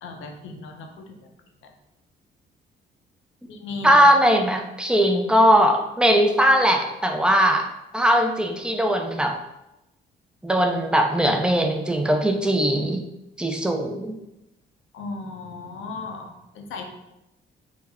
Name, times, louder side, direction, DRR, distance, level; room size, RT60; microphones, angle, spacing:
voice 1, 0.0-1.2 3.5-4.0 14.9-16.8, left 3 dB, 75° left, 3 dB, 0.6 m, -36 dB
voice 2, 3.8-7.7 7.9-9.3 10.4-13.0 13.4-14.1, equal, 5° right, 5 dB, 0.3 m, -19 dB
3.4 x 2.1 x 3.4 m, 0.92 s
cardioid pair, 90°, 20 cm